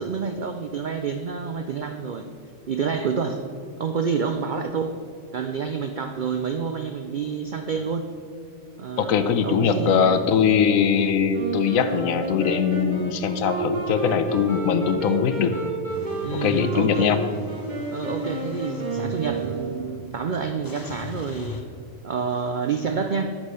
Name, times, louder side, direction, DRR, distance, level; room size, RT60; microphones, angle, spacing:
voice 1, 0.0-2.3 2.7-3.4 3.8-5.0 5.3-8.1 8.8-10.2 16.2-17.2 17.9-21.6 22.0-23.4, right 5 dB, 75° right, 7 dB, 0.4 m, -28 dB
voice 2, 9.0-15.5 16.4-17.2, left 7 dB, 80° left, 10 dB, 1.1 m, -21 dB
Wind instrument woodwind instrument, 11.3-20.1, right 2 dB, 35° right, 1.4 m, -31 dB
Car / Engine starting / Idling, 15.9-21.6, left 3 dB, 20° left, 0.5 m, -37 dB
9.8 x 6.1 x 6.3 m, 2.3 s
omnidirectional pair, 1.4 m